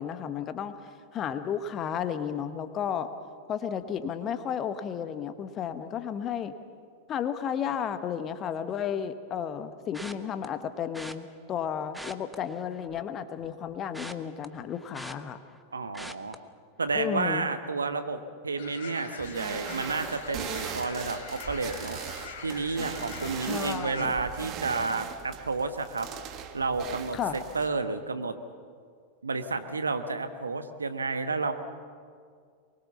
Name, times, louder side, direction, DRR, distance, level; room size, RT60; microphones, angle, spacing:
voice 1, 0.0-3.1 3.5-6.5 7.1-15.4 16.9-17.5 23.4-24.2 27.1-27.4, left 8 dB, 30° left, 11 dB, 1.2 m, -33 dB
sound 1, 9.9-10.5 10.9-11.2 11.8-13.1 13.4-15.6 15.9-16.4 16.8-17.1 17.4-17.5, equal, ahead, 0.9 m, -43 dB
voice 2, 15.7-16.3 16.8-22.0 22.4-26.1 26.5-27.2 27.5-28.3 29.2-31.5, right 3 dB, 75° right, 9 dB, 1.2 m, -31 dB
sound 2, 18.6-24.1, left 5 dB, 50° left, 3.6 m, -43 dB
sound 3, 19.2-27.7, right 8 dB, 35° right, 1.5 m, -39 dB
23.5 x 21.0 x 7.2 m, 2.1 s
figure-of-eight pair, 90°, 0 cm